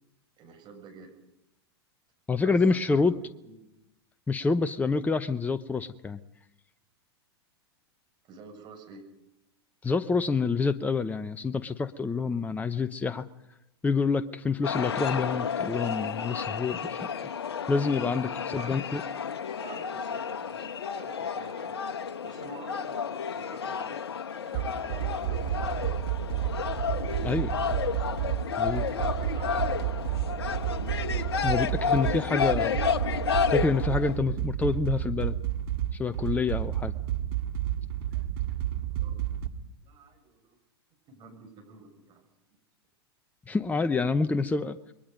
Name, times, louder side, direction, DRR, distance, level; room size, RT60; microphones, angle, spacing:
voice 1, 0.4-1.1 2.4-2.6 2.9-3.0 3.4-3.7 8.2-9.0 18.6-18.7 19.5-21.8 22.2-24.0 24.4-26.1 28.4-30.7 31.8-32.8 39.0-39.2 39.8-40.6 41.1-42.2, right 4 dB, 35° right, 3 dB, 6.9 m, -49 dB
voice 2, 2.3-3.1 4.3-6.2 9.8-13.3 13.8-17.1 17.7-19.0 27.2-27.5 28.6-28.8 31.4-32.7 33.5-35.3 35.9-36.9 43.5-44.8, left 4 dB, 10° left, 12 dB, 0.8 m, -27 dB
sound 1, 14.6-34.2, left 7 dB, 75° left, 1.2 m, -31 dB
sound 2, 24.5-39.5, right 12 dB, 60° right, 2.0 m, -31 dB
28.5 x 22.5 x 5.3 m, 0.85 s
hypercardioid pair, 100°, 14 cm